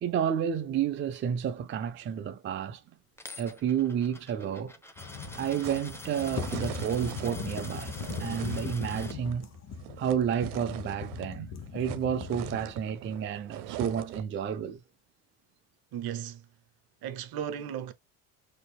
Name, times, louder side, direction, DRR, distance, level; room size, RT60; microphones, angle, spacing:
voice 1, 0.0-2.8 3.4-4.7 5.4-7.9 8.2-9.5 10.0-14.8, right 8 dB, 25° right, 0.4 m, -31 dB
Coin (dropping), 3.2-9.1, left 1 dB, 5° left, 0.9 m, -47 dB
sound 1, 5.0-12.7, left 7 dB, 35° left, 1.1 m, -39 dB
sound 2, 5.0-11.4 11.6-14.4, right 13 dB, 85° right, 0.8 m, -43 dB
voice 2, 15.9-16.5 17.0-17.9, right 9 dB, 50° right, 0.9 m, -35 dB
6.4 x 2.8 x 2.3 m
supercardioid pair, 95°, 45 cm